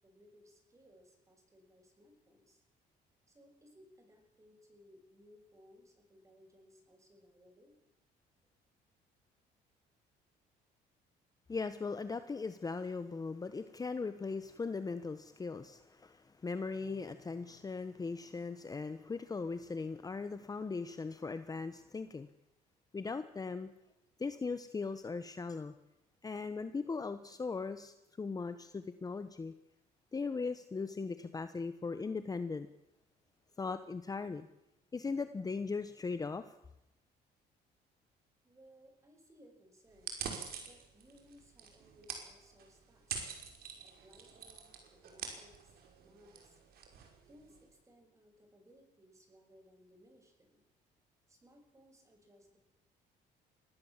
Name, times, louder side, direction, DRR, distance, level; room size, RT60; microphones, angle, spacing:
voice 1, 0.0-2.6 3.3-7.7 38.4-40.3 40.6-43.2 43.8-46.6 47.3-50.6 51.3-52.6, equal, 20° right, 5 dB, 6.9 m, -63 dB
voice 2, 11.5-22.3 22.9-23.7 24.2-25.7 26.2-29.5 30.1-32.7 33.6-34.5 34.9-36.5, left 4 dB, 20° left, 11 dB, 1.1 m, -39 dB
sound 1, 39.9-47.7, right 6 dB, 65° right, 5.4 m, -46 dB
24.0 x 18.0 x 7.4 m, 0.88 s
cardioid pair, 110°, 17 cm